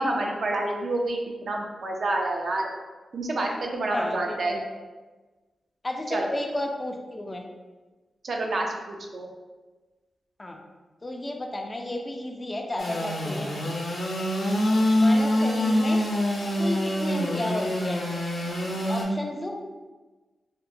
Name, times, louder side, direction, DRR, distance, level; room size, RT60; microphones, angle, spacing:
voice 1, 0.0-2.6 3.1-4.6 6.1-6.2 8.2-9.3, right 2 dB, 60° right, 1 dB, 0.4 m, -28 dB
voice 2, 5.8-7.4 10.4-10.6 11.0-13.5 15.0-16.0 16.6-18.0 18.9-19.6, left 1 dB, 25° left, 2 dB, 0.3 m, -32 dB
Engine / Sawing, 12.8-19.0, left 1 dB, 80° left, 0.5 m, -25 dB
2.8 x 2.0 x 2.5 m, 1.2 s
wide cardioid pair, 90°, 0 cm